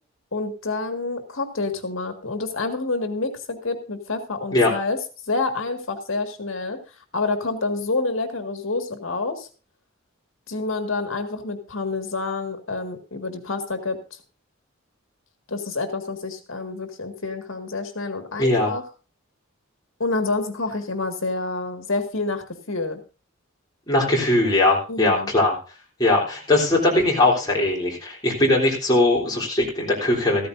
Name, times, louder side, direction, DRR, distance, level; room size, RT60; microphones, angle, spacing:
voice 1, 0.3-5.0 5.3-6.8 7.1-9.5 10.5-14.0 15.5-18.8 20.0-23.0 24.9-25.3, left 3 dB, 70° left, 6 dB, 1.9 m, -28 dB
voice 2, 18.4-18.7 23.9-25.6 26.0-30.5, left 2 dB, 20° left, -3 dB, 3.4 m, -20 dB
14.5 x 13.5 x 2.6 m, 0.34 s
head